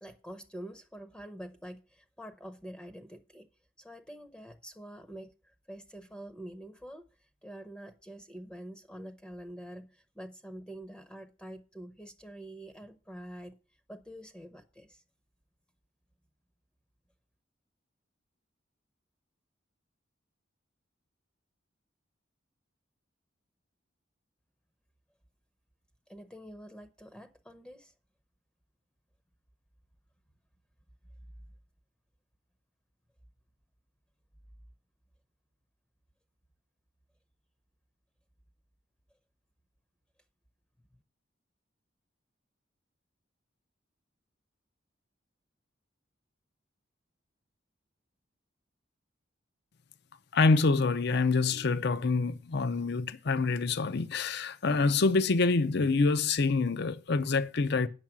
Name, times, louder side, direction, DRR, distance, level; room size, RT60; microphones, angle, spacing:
voice 1, 0.0-3.5 3.8-7.1 7.4-13.6 13.9-15.0 26.1-27.9, right 1 dB, 5° left, 0.7 m, -46 dB
voice 2, 50.3-57.9, left 3 dB, 60° left, 0.6 m, -26 dB
8.9 x 6.4 x 6.0 m
head